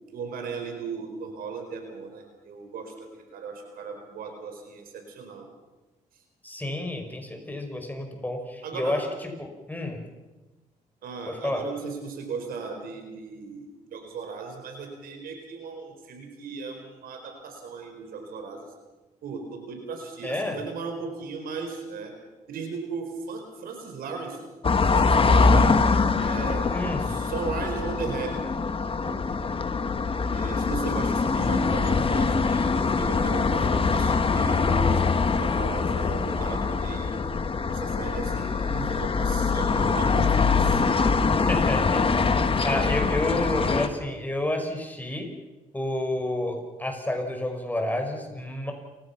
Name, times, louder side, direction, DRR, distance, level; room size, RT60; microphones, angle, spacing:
voice 1, 0.1-5.5 8.6-9.0 11.0-18.7 19.2-22.1 22.5-24.4 24.7-25.8 26.2-26.6 27.0-28.3 29.0-29.3 30.3-37.1 37.7-40.8, right 5 dB, 75° right, 4 dB, 4.7 m, -36 dB
voice 2, 6.4-10.0 11.3-11.7 20.2-20.6 26.7-27.2 41.3-45.3 45.7-48.7, left 1 dB, 10° left, 4 dB, 5.6 m, -30 dB
sound 1, 24.6-43.9, left 4 dB, 35° left, 1.8 m, -23 dB
29.5 x 16.0 x 6.0 m, 1.2 s
cardioid pair, 70°, 15 cm